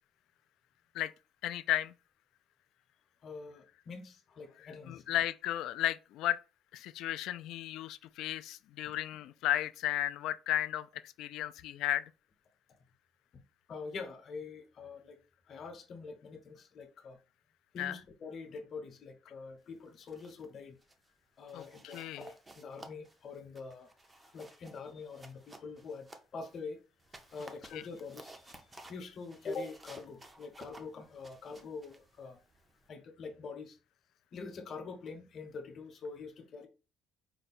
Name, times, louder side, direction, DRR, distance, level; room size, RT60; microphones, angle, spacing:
voice 1, 1.4-1.9 4.6-6.4 6.7-12.0 17.8-18.0 21.5-22.3 27.7-27.8, left 13 dB, 65° left, 0.3 m, -34 dB
voice 2, 3.2-5.0 13.3-13.4 13.7-15.2 15.5-17.2 17.7-20.8 21.4-23.9 24.3-26.8 27.3-28.6 28.9-32.4 32.9-33.8 34.3-36.7, left 4 dB, 35° left, 0.8 m, -45 dB
sound 1, 19.9-20.5 20.8-21.1 21.5-26.6 27.0-32.9, right 2 dB, 15° right, 0.4 m, -55 dB
4.6 x 2.2 x 4.1 m
cardioid pair, 175°, 0 cm